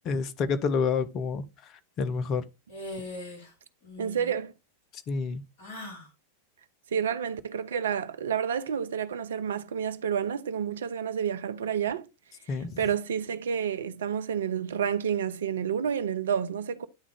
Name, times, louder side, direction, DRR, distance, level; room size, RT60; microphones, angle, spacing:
voice 1, 0.0-2.4 5.1-5.4 12.5-12.8, left 5 dB, 35° left, 0.7 m, -29 dB
sound 1, 2.7-3.5 3.8-4.4 5.6-6.1, left 1 dB, 55° left, 3.1 m, -40 dB
voice 2, 4.0-4.5 6.9-12.1 12.8-16.9, right 8 dB, 65° right, 0.5 m, -29 dB
9.7 x 3.6 x 3.4 m
figure-of-eight pair, 90°, 0 cm